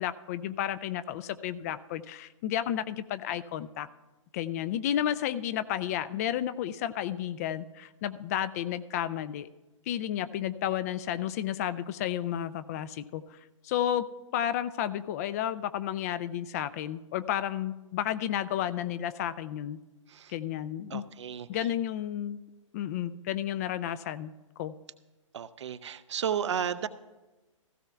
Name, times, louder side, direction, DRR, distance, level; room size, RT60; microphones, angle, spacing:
voice 1, 0.0-3.9 4.3-9.5 9.9-13.4 13.6-14.1 14.3-19.8 20.3-21.0 21.5-22.4 22.7-24.3 24.6-24.7, left 11 dB, 30° left, 14 dB, 0.3 m, -32 dB
voice 2, 20.9-21.7 25.3-26.9, right 8 dB, 60° right, 13 dB, 0.6 m, -33 dB
16.0 x 14.5 x 2.3 m, 1.1 s
figure-of-eight pair, 120°, 17 cm